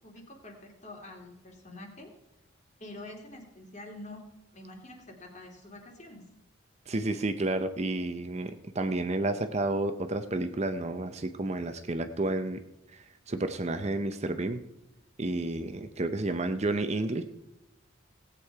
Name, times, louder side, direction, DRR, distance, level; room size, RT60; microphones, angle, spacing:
voice 1, 0.0-2.1 2.8-6.3, left 1 dB, 35° left, 3 dB, 2.5 m, -46 dB
voice 2, 6.9-12.6 12.9-14.6 15.2-17.2, right 2 dB, 30° right, 9 dB, 0.6 m, -31 dB
17.5 x 8.4 x 4.7 m, 0.91 s
head